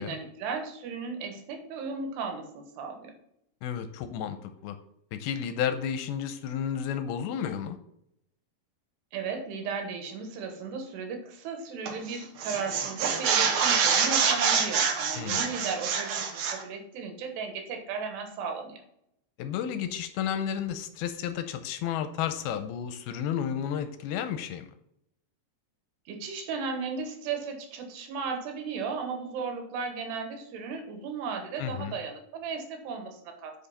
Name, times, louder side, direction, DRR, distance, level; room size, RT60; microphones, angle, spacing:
voice 1, 0.0-3.1 9.1-18.8 26.1-33.5, right 5 dB, 85° right, 4 dB, 3.4 m, -35 dB
voice 2, 3.6-4.8 5.1-7.8 15.1-15.4 19.4-24.7 31.6-32.0, left 9 dB, 85° left, 9 dB, 2.5 m, -32 dB
sound 1, 11.9-12.1 12.4-16.6, right 6 dB, 70° right, 1.8 m, -26 dB
9.0 x 5.2 x 4.1 m, 0.75 s
omnidirectional pair, 4.6 m